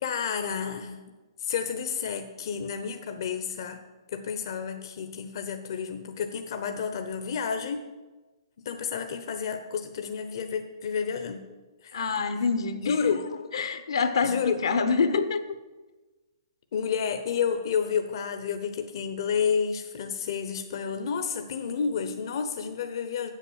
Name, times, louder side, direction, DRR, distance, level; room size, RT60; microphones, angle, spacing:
voice 1, 0.0-1.1 1.4-3.8 4.1-7.8 8.6-11.4 11.8-12.0 12.4-12.5 12.8-13.2 14.2-14.7 16.7-23.3, left 6 dB, 60° left, 6 dB, 0.8 m, -30 dB
voice 2, 11.9-13.2 13.5-15.4, left 5 dB, 80° left, 9 dB, 1.1 m, -26 dB
8.1 x 7.4 x 6.9 m, 1.2 s
hypercardioid pair, 145°, 3 cm